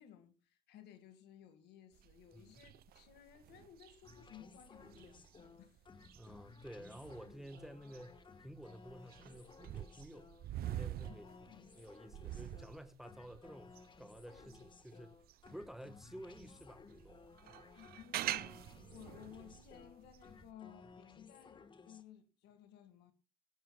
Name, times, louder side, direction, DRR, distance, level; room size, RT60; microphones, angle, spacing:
voice 1, 0.0-5.8 11.1-11.7 17.8-23.1, left 10 dB, 80° left, 1.8 m, -58 dB
sound 1, 2.0-15.6 16.1-20.5, right 12 dB, 65° right, 0.7 m, -47 dB
voice 2, 2.3-2.7 6.1-10.3 10.7-11.3 11.8-15.2 15.5-17.2 17.5-17.6, equal, ahead, 1.2 m, -52 dB
sound 2, 4.0-22.0, left 4 dB, 30° left, 1.3 m, -59 dB
22.0 x 12.5 x 2.3 m
cardioid pair, 110°, 17 cm